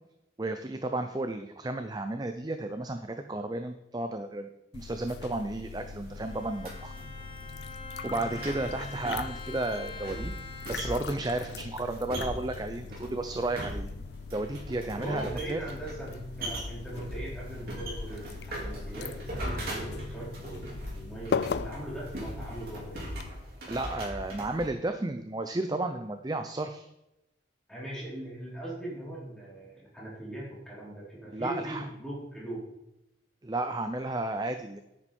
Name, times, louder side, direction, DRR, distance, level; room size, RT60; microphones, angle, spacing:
voice 1, 0.4-6.9 8.0-10.3 10.7-13.9 14.3-15.6 23.7-26.9 31.3-31.9 33.4-34.8, right 2 dB, 20° right, 7 dB, 0.5 m, -33 dB
sound 1, 4.7-23.3, left 6 dB, 60° left, 0.3 m, -40 dB
sound 2, 5.6-24.7, equal, 50° right, 4.0 m, -40 dB
Bowed string instrument, 6.2-11.3, left 3 dB, 25° left, 0.9 m, -44 dB
voice 2, 15.0-23.0 27.7-32.6, right 1 dB, 5° left, -7 dB, 4.4 m, -40 dB
9.8 x 8.9 x 4.4 m, 0.89 s
head